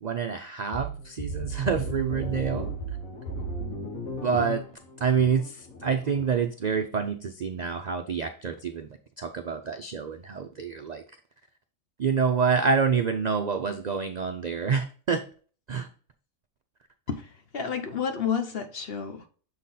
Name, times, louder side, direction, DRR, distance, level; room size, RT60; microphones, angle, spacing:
voice 1, 0.0-2.7 3.9-4.6 5.0-8.9 9.2-11.0 12.0-15.2 15.7-15.9, right 6 dB, 65° right, 0.4 m, -27 dB
sound 1, 0.7-6.4, right 1 dB, 80° left, 1.9 m, -35 dB
voice 2, 17.1-19.3, left 7 dB, 55° left, 0.9 m, -30 dB
6.7 x 4.2 x 3.8 m
omnidirectional pair, 1.4 m